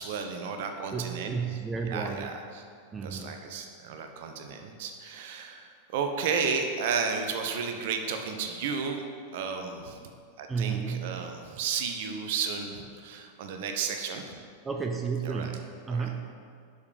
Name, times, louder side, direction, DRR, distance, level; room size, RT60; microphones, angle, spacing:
voice 1, 0.0-1.6 1.9-2.6 3.0-9.0 9.3-10.0 10.4-14.4 15.2-15.5 15.9-16.0, right 5 dB, 50° right, 5 dB, 0.7 m, -33 dB
voice 2, 0.9-2.4 2.9-3.4 10.5-11.2 14.6-16.3, right 5 dB, 15° right, 3 dB, 0.5 m, -32 dB
6.6 x 5.1 x 4.9 m, 2.2 s
figure-of-eight pair, 90°, 0 cm